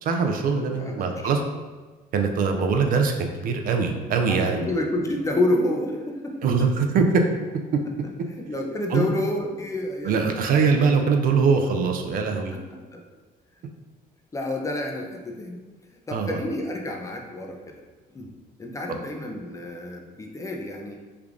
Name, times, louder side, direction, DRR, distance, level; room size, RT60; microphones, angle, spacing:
voice 1, 0.0-1.4 2.1-4.7 6.4-7.3 7.7-7.8 8.9-9.1 10.0-12.5 16.1-16.4, right 5 dB, 55° right, 4 dB, 0.4 m, -22 dB
voice 2, 0.7-1.2 4.3-6.7 8.3-10.4 11.8-11.9 12.3-13.0 14.3-15.6 16.1-17.7 18.1-18.3 18.6-21.0, left 1 dB, 20° left, 1 dB, 0.4 m, -29 dB
3.3 x 2.4 x 3.6 m, 1.3 s
cardioid pair, 110°, 17 cm